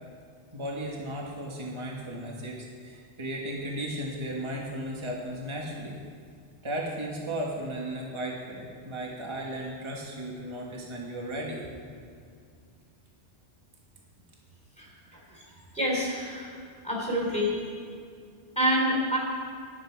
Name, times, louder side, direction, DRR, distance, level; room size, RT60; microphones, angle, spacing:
voice 1, 0.5-6.0 6.6-11.7, right 1 dB, 25° right, -2 dB, 1.5 m, -35 dB
voice 2, 15.7-16.5 16.8-17.6 18.5-19.2, equal, 5° left, -2 dB, 3.3 m, -27 dB
12.0 x 10.5 x 4.6 m, 2.3 s
omnidirectional pair, 1.2 m